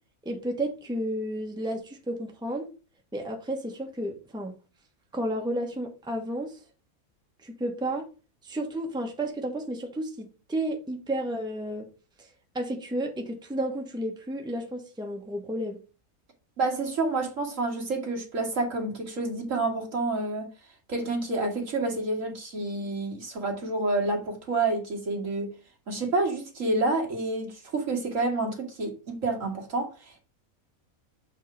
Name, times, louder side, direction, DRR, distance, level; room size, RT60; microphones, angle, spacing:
voice 1, 0.2-2.7 3.1-4.5 5.1-6.6 7.4-8.1 8.4-11.9 12.2-12.3 12.5-15.8, right 1 dB, 5° right, 1.1 m, -32 dB
voice 2, 16.6-20.5 20.9-25.5 25.9-30.2, right 2 dB, 60° right, 2.2 m, -29 dB
7.3 x 3.6 x 5.7 m
omnidirectional pair, 1.5 m